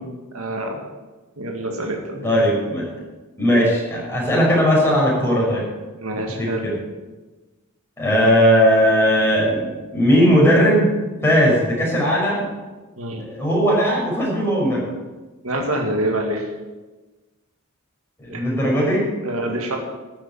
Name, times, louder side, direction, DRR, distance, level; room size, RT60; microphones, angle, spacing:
voice 1, 0.3-0.8 1.4-2.3 6.0-6.7 13.0-13.2 15.4-16.4 18.3-18.4 19.2-19.8, right 1 dB, 70° right, 2 dB, 2.0 m, -26 dB
voice 2, 2.2-2.8 3.4-5.6 6.4-6.7 8.0-10.9 11.2-12.4 13.2-14.8 18.2-19.0, equal, 10° left, -5 dB, 6.3 m, -18 dB
13.0 x 8.6 x 8.8 m, 1.2 s
head